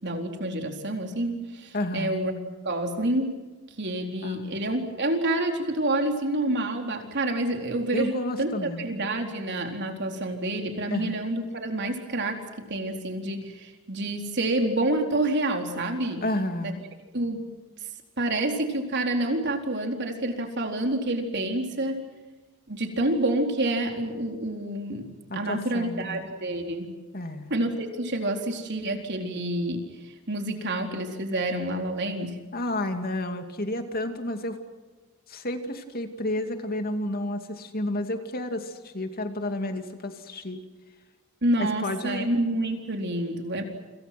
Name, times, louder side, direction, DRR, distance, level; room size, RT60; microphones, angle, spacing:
voice 1, 0.0-2.3 2.6-3.3 3.8-16.2 16.6-16.7 17.1-17.5 18.2-22.0 22.7-26.9 27.5-32.4 41.4-43.6, right 1 dB, 55° right, 4 dB, 4.2 m, -28 dB
voice 2, 1.7-2.2 4.2-4.6 7.9-8.9 10.9-11.2 16.2-16.8 25.3-26.2 27.1-27.5 32.5-34.6 35.3-40.6 41.6-42.3, left 1 dB, 45° left, 6 dB, 2.6 m, -31 dB
29.5 x 26.5 x 6.1 m, 1.3 s
head